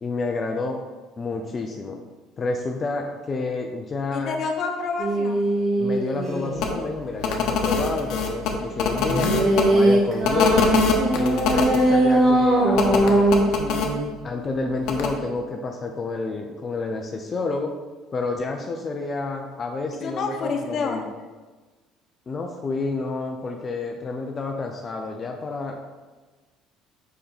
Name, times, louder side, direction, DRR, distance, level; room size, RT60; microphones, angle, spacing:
voice 1, 0.0-0.8 1.2-2.0 2.4-4.3 5.8-9.4 9.7-10.7 11.1-13.3 14.2-17.8 18.1-21.1 22.3-25.8, left 3 dB, 35° left, 3 dB, 0.6 m, -29 dB
voice 2, 4.1-5.4 20.0-21.1, left 4 dB, 50° left, 3 dB, 1.0 m, -28 dB
sound 1, 5.0-6.7 9.0-14.0, right 1 dB, 45° right, 1.8 m, -21 dB
sound 2, 6.6-6.7 7.2-9.6 10.2-11.8 12.7-13.9 14.9-15.1, left 5 dB, 70° left, 0.9 m, -23 dB
5.5 x 5.1 x 4.2 m, 1.3 s
supercardioid pair, 100°, 0 cm